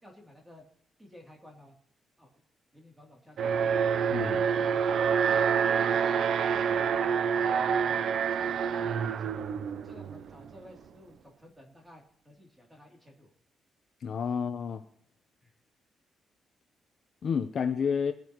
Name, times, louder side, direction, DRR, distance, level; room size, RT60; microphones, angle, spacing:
voice 1, 0.0-0.6 1.0-1.7 2.2-2.3 2.7-3.6 4.6-4.7 5.0-7.3 7.8-9.5 9.8-13.3 15.4-15.5, equal, 10° right, 0 dB, 3.0 m, -52 dB
Alarm, 3.4-10.5, right 7 dB, 60° right, 0.5 m, -27 dB
voice 2, 4.1-4.4 14.0-14.8 17.2-18.1, left 6 dB, 45° left, 7 dB, 0.8 m, -30 dB
23.5 x 9.1 x 3.1 m, 0.68 s
cardioid pair, 170°, 0 cm